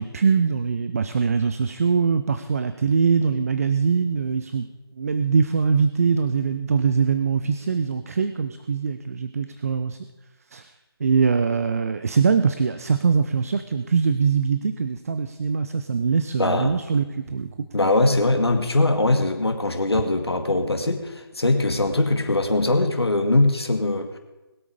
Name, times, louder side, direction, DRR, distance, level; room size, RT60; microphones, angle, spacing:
voice 1, 0.0-4.7 5.0-10.0 10.5-10.7 11.0-17.5, right 5 dB, 35° right, 11 dB, 0.5 m, -22 dB
voice 2, 16.4-16.8 17.7-24.2, left 2 dB, 75° left, 5 dB, 2.1 m, -21 dB
21.0 x 8.4 x 5.0 m, 1.1 s
figure-of-eight pair, 155°, 13 cm